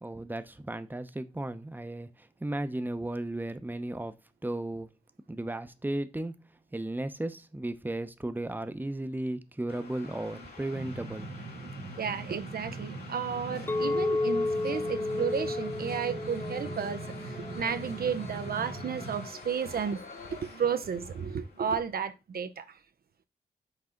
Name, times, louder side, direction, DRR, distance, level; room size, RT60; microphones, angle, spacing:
voice 1, 0.0-4.1 4.4-4.9 5.3-6.3 6.7-11.3, right 1 dB, 10° right, 0.8 m, -35 dB
sound 1, 9.7-22.0, left 3 dB, 70° left, 3.1 m, -47 dB
sound 2, 10.7-19.3, right 3 dB, 80° right, 1.1 m, -41 dB
voice 2, 12.0-20.0 20.3-22.8, right 6 dB, 65° right, 0.7 m, -33 dB
Chink clink, 13.7-17.9, left 2 dB, 15° left, 0.4 m, -32 dB
6.0 x 4.1 x 3.9 m
supercardioid pair, 40°, 17 cm